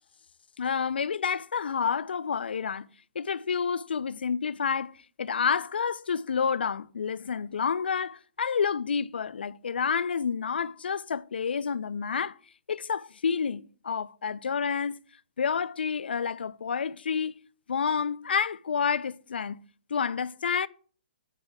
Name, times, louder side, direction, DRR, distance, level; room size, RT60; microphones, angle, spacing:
voice 1, 0.6-2.9 3.2-12.4 12.7-15.0 15.4-17.4 17.7-19.6 19.9-20.7, left 6 dB, 85° left, 0.4 m, -29 dB
9.6 x 8.9 x 2.2 m
hypercardioid pair, 155°, 5 cm